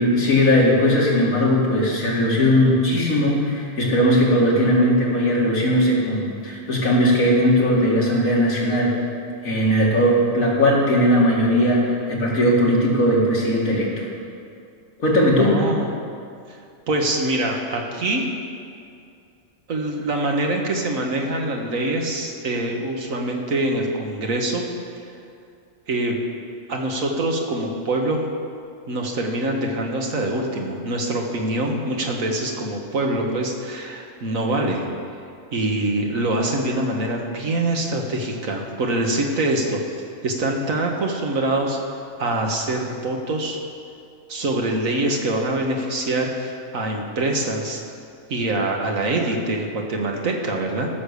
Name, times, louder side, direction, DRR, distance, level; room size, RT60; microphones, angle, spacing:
voice 1, 0.0-9.0 9.4-14.1 15.0-15.6, equal, 90° left, -4 dB, 2.7 m, -18 dB
voice 2, 15.4-15.9 16.5-16.6 16.9-18.3 19.7-24.6 25.9-26.2 26.7-28.2 28.9-34.9 35.5-39.8 40.2-41.8 42.2-43.6 44.3-47.8 48.3-50.9, right 1 dB, 85° right, 1 dB, 1.8 m, -24 dB
15.0 x 6.6 x 6.7 m, 2.4 s
omnidirectional pair, 1.4 m